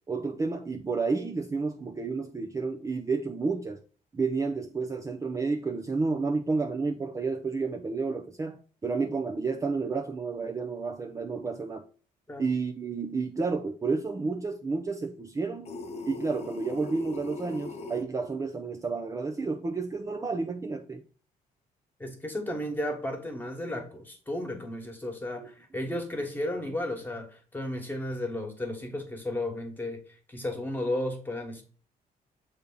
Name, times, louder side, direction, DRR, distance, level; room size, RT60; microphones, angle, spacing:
voice 1, 0.1-3.8 4.1-11.9 12.4-15.7 16.1-21.0 25.4-25.5, right 4 dB, 20° right, 0.6 m, -31 dB
sound 1, 15.6-18.0, left 2 dB, 45° left, 0.8 m, -39 dB
voice 2, 22.0-30.0 30.3-31.6, left 1 dB, 15° left, 1.6 m, -33 dB
7.1 x 3.5 x 3.9 m
cardioid pair, 125°, 15 cm